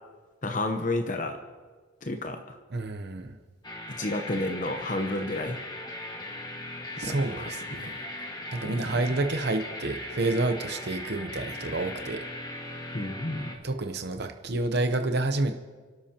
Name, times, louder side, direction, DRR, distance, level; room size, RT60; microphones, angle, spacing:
voice 1, 0.4-1.4 2.0-2.6 4.0-5.6 7.0-7.5 12.9-13.5, left 2 dB, 40° left, 5 dB, 0.9 m, -30 dB
voice 2, 2.7-3.4 6.9-8.0 8.5-12.3 13.6-15.5, right 2 dB, 50° right, 7 dB, 0.8 m, -29 dB
sound 1, 3.6-13.6, left 1 dB, 20° left, 1.7 m, -39 dB
29.5 x 12.5 x 2.9 m, 1.4 s
head